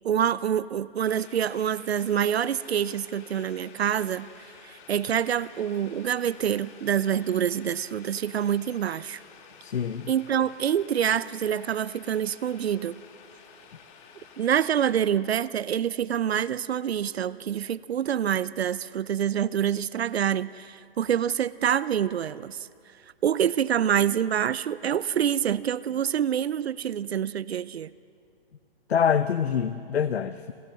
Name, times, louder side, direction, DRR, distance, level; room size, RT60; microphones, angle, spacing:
voice 1, 0.0-4.3 4.6-9.2 10.1-13.0 14.4-22.7 23.2-27.9, right 9 dB, 80° right, 18 dB, 0.6 m, -26 dB
Boiling, 1.1-15.1, left 6 dB, 20° left, 1.8 m, -51 dB
voice 2, 9.6-10.1 28.9-30.5, left 7 dB, 80° left, 12 dB, 0.9 m, -25 dB
29.0 x 13.0 x 7.5 m, 2.3 s
hypercardioid pair, 150°, 31 cm